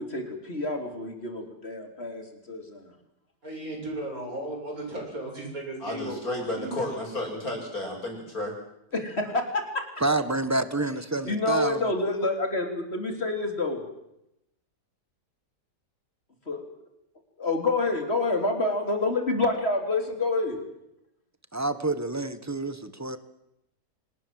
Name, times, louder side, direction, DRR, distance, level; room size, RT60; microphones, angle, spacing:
voice 1, 0.0-2.9 8.9-9.8 11.2-13.8 16.5-16.6 17.4-20.6, left 2 dB, 35° left, 5 dB, 3.9 m, -28 dB
voice 2, 3.4-7.0, right 1 dB, 55° right, 0 dB, 7.9 m, -36 dB
voice 3, 5.8-8.5, left 1 dB, 60° left, 2 dB, 6.9 m, -32 dB
voice 4, 10.0-11.9 21.5-23.2, right 2 dB, 10° right, 12 dB, 1.3 m, -28 dB
26.0 x 19.0 x 7.8 m, 0.83 s
omnidirectional pair, 1.8 m